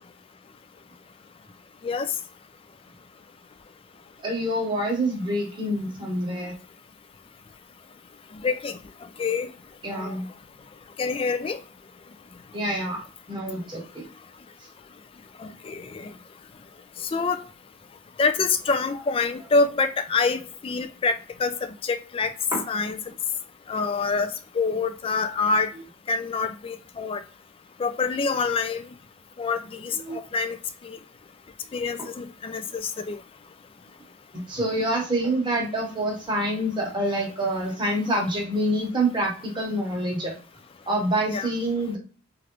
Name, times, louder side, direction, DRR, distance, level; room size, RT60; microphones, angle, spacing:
voice 1, 4.2-6.5 9.8-10.3 12.5-14.0 22.5-22.6 29.9-30.2 34.3-40.4 40.9-42.0, right 1 dB, 25° right, 1.0 m, -27 dB
voice 2, 8.4-8.8 9.2-9.5 9.9-10.1 11.0-11.6 15.4-16.1 17.1-17.4 18.2-22.3 22.7-23.0 23.7-25.7 26.1-27.2 27.8-28.9 29.4-30.6 30.8-31.0 31.7-33.2 41.3-41.5, left 4 dB, 30° left, 0.3 m, -26 dB
3.2 x 2.5 x 3.0 m
head